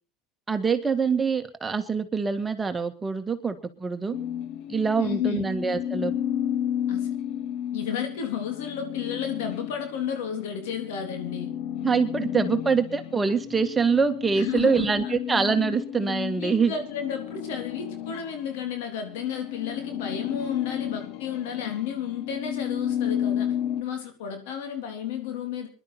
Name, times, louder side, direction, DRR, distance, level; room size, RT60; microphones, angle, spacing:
voice 1, 0.5-4.1 4.7-6.1 11.8-16.7, right 5 dB, 20° right, 1.7 m, -25 dB
sound 1, 4.1-18.7 19.1-23.8, left 10 dB, 60° left, 1.1 m, -32 dB
voice 2, 5.0-5.5 6.9-7.1 7.7-11.5 14.4-15.1 16.4-25.7, left 8 dB, 80° left, 3.6 m, -32 dB
21.5 x 11.5 x 4.2 m
supercardioid pair, 95°, 0 cm